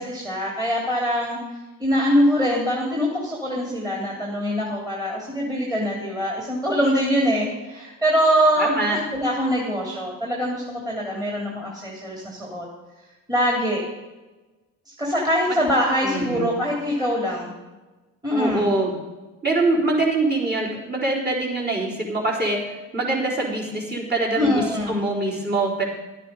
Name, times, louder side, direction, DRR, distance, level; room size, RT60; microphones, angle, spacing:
voice 1, 0.0-1.4 1.8-12.7 13.3-13.8 14.9-17.5 18.2-18.7 24.3-25.1, equal, 10° right, -2 dB, 2.9 m, -23 dB
voice 2, 8.6-9.0 16.0-16.5 18.3-18.9 19.4-25.8, right 2 dB, 30° right, -3 dB, 4.2 m, -24 dB
12.0 x 9.1 x 5.4 m, 1.2 s
cardioid pair, 85°, 35 cm